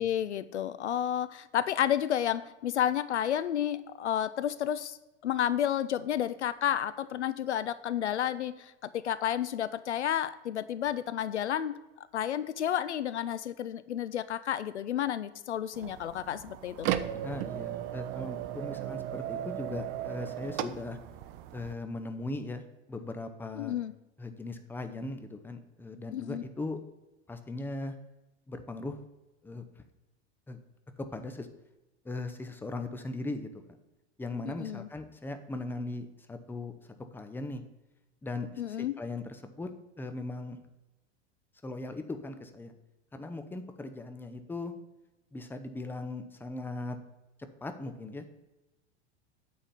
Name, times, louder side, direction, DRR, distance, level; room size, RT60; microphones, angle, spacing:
voice 1, 0.0-5.0 5.2-11.8 12.1-16.9 23.6-23.9 26.1-26.4 34.4-34.9 38.6-38.9, left 10 dB, 75° left, 15 dB, 0.5 m, -31 dB
sound 1, 15.7-21.7, right 12 dB, 35° right, 0.5 m, -36 dB
voice 2, 17.2-21.0 21.5-23.8 24.2-26.8 27.3-27.9 28.5-29.0 29.4-29.8 30.5-30.6 31.0-31.5 32.0-33.6 34.2-36.7 37.1-37.6 38.2-39.7 40.0-40.6 41.6-42.7 43.1-44.7 45.3-47.0 47.6-48.3, left 2 dB, 5° left, 8 dB, 0.7 m, -39 dB
8.9 x 4.4 x 7.0 m, 1.0 s
figure-of-eight pair, 85°, 34 cm